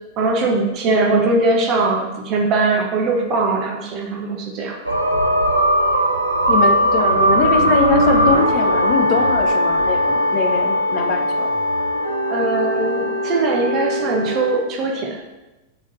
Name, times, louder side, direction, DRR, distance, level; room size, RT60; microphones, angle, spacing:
voice 1, 0.2-4.8 12.3-15.2, right 3 dB, 35° right, 1 dB, 0.9 m, -20 dB
sound 1, 4.9-14.6, equal, 90° right, 0.5 m, -19 dB
voice 2, 6.5-10.0 10.3-11.5, left 6 dB, 40° left, 4 dB, 0.5 m, -22 dB
4.0 x 3.2 x 4.0 m, 1.0 s
figure-of-eight pair, 90°, 0 cm